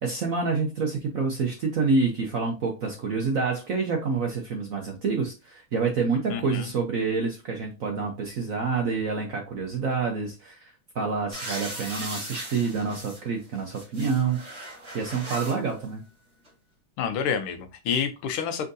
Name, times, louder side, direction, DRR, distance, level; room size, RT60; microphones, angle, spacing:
voice 1, 0.0-14.4 14.9-16.0, right 4 dB, 65° right, 1 dB, 0.8 m, -27 dB
voice 2, 6.3-6.7 17.0-18.7, left 7 dB, 80° left, 7 dB, 1.6 m, -28 dB
sound 1, 11.3-13.2 13.6-15.6 16.4-16.5, right 1 dB, 35° right, 2.5 m, -38 dB
5.3 x 3.5 x 2.6 m, 0.28 s
omnidirectional pair, 2.4 m